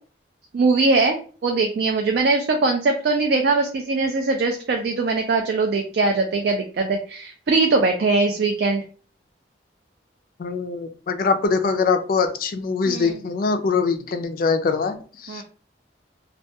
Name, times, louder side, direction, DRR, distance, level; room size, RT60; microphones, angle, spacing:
voice 1, 0.5-8.8 12.9-13.2 15.3-15.4, right 3 dB, 55° right, 2 dB, 0.3 m, -21 dB
voice 2, 10.4-15.4, left 4 dB, 50° left, 7 dB, 0.3 m, -23 dB
2.2 x 2.2 x 2.6 m, 0.40 s
head